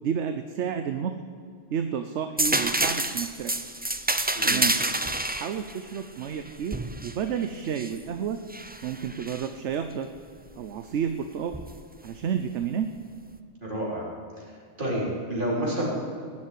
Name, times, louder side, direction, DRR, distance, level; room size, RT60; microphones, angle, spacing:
voice 1, 0.0-1.1 1.7-3.5 4.4-4.8 5.4-6.8 7.0-8.4 8.8-10.1 10.6-11.6 12.0-12.9, right 8 dB, 70° right, 8 dB, 1.0 m, -30 dB
sound 1, 2.4-8.0 8.5-9.5 11.5-11.7, right 2 dB, 15° right, 0.3 m, -28 dB
voice 2, 13.6-14.1 14.8-15.9, right 1 dB, 40° right, -5 dB, 4.3 m, -29 dB
16.5 x 7.5 x 9.4 m, 2.1 s
omnidirectional pair, 1.3 m